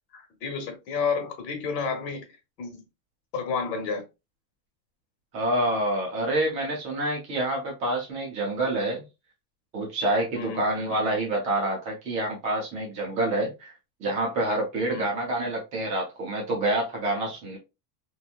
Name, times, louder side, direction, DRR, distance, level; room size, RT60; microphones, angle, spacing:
voice 1, 0.1-2.3 2.6-2.8 3.3-4.0 10.4-10.6 14.9-15.1, left 5 dB, 75° left, 1.2 m, -30 dB
voice 2, 5.3-9.0 9.7-13.7 14.0-17.6, right 1 dB, 15° right, 0.3 m, -27 dB
2.9 x 2.2 x 2.3 m
supercardioid pair, 160°, 49 cm